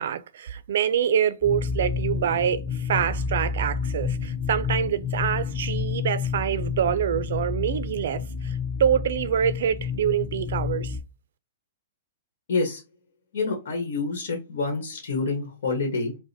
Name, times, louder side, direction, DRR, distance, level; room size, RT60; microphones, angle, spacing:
voice 1, 0.0-11.0, right 9 dB, 65° right, 0.4 m, -26 dB
sound 1, 1.4-11.0, left 5 dB, 30° left, 1.5 m, -29 dB
voice 2, 12.5-12.8 13.3-16.2, left 3 dB, 70° left, 1.2 m, -27 dB
4.7 x 2.1 x 2.7 m
hypercardioid pair, 155°, 0 cm